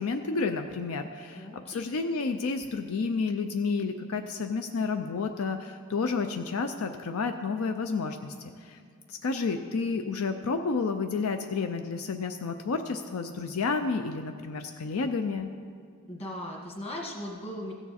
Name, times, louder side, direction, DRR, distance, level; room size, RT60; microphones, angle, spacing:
voice 1, 0.0-8.3 8.6-8.8 9.1-15.5, left 4 dB, 75° left, 6 dB, 0.5 m, -30 dB
voice 2, 1.4-1.8 16.1-17.7, left 1 dB, 25° left, -1 dB, 1.6 m, -38 dB
16.0 x 7.0 x 4.2 m, 2.2 s
head